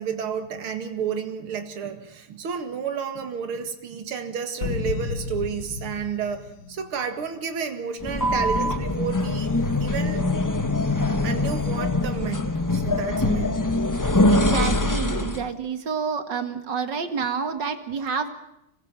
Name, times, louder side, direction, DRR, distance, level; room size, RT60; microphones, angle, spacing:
voice 1, 0.0-9.5 9.8-10.2 11.2-13.6, right 6 dB, 75° right, 6 dB, 2.8 m, -31 dB
sound 1, 4.6-7.4, left 5 dB, 55° left, 1.9 m, -32 dB
sound 2, 8.0-15.5, left 2 dB, 15° left, 0.6 m, -23 dB
voice 2, 14.3-18.3, right 5 dB, 55° right, 7 dB, 2.6 m, -28 dB
27.0 x 20.0 x 9.0 m, 0.82 s
omnidirectional pair, 2.4 m